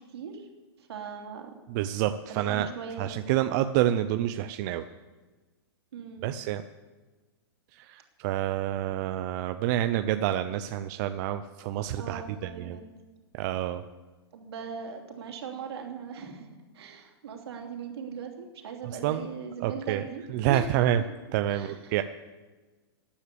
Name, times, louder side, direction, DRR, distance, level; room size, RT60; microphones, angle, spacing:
voice 1, 0.1-0.5 0.8-1.5 2.3-3.3 5.9-6.3 12.0-12.9 14.3-16.5 16.7-20.6 21.5-21.9, right 6 dB, 70° right, 2 dB, 2.9 m, -39 dB
voice 2, 1.7-2.7 3.0-4.9 6.2-6.6 7.7-12.8 13.3-13.8 19.0-19.3 19.6-20.0 20.3-21.0 21.3-22.0, right 12 dB, 45° right, 10 dB, 0.6 m, -28 dB
13.5 x 10.0 x 6.8 m, 1.3 s
hypercardioid pair, 135°, 14 cm